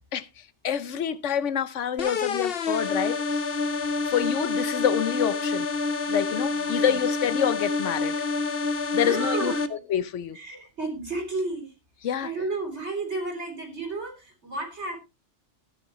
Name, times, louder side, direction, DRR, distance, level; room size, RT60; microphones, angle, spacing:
voice 1, 0.1-3.5 4.1-5.7 6.1-8.2 8.9-9.5 9.9-10.4 12.0-12.3, left 9 dB, 85° left, 1.1 m, -27 dB
sound 1, 2.0-9.7, left 3 dB, 55° left, 1.1 m, -28 dB
voice 2, 6.5-6.9 9.0-9.7 10.3-11.7 12.2-15.0, right 3 dB, 70° right, 3.9 m, -32 dB
14.0 x 10.0 x 3.0 m
omnidirectional pair, 1.2 m